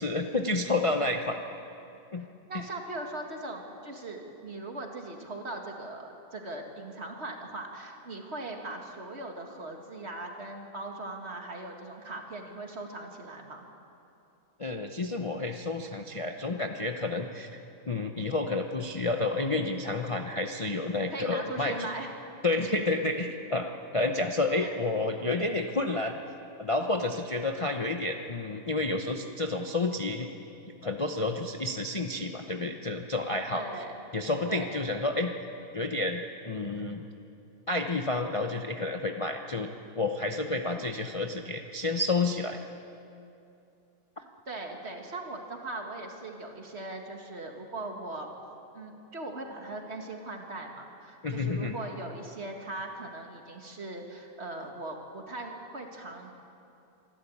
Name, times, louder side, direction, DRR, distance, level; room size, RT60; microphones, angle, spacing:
voice 1, 0.0-1.4 2.1-2.3 2.5-2.6 14.6-17.5 17.9-21.7 22.4-23.7 23.9-26.2 26.6-30.3 30.8-33.6 34.1-35.3 35.7-37.0 37.7-42.6 51.2-51.7, left 2 dB, 30° left, 4 dB, 0.7 m, -30 dB
voice 2, 2.2-13.6 21.1-22.1 24.6-24.7 33.5-34.0 34.5-34.8 44.2-48.3 48.7-56.4, right 2 dB, 45° right, 2 dB, 2.2 m, -40 dB
25.5 x 12.5 x 8.7 m, 2.7 s
omnidirectional pair, 1.6 m